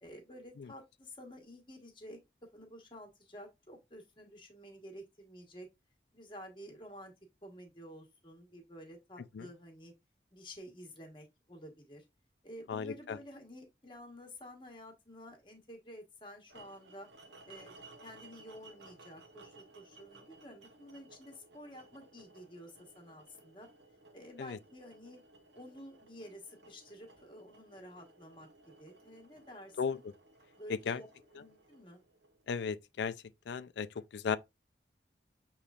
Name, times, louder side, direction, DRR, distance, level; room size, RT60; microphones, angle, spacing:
voice 1, 0.0-2.2 2.5-5.7 6.1-7.1 7.4-9.9 10.3-12.0 12.4-17.1 17.5-23.7 24.1-25.2 25.5-30.0 30.6-31.1 31.3-32.0, equal, 25° left, 1.1 m, -51 dB
voice 2, 12.7-13.2 24.4-24.6 29.8-30.0 30.7-31.0 32.5-33.2 33.5-34.4, left 6 dB, 80° left, 0.4 m, -35 dB
sound 1, 16.5-32.6, right 2 dB, 80° right, 0.8 m, -59 dB
6.6 x 3.1 x 2.4 m
head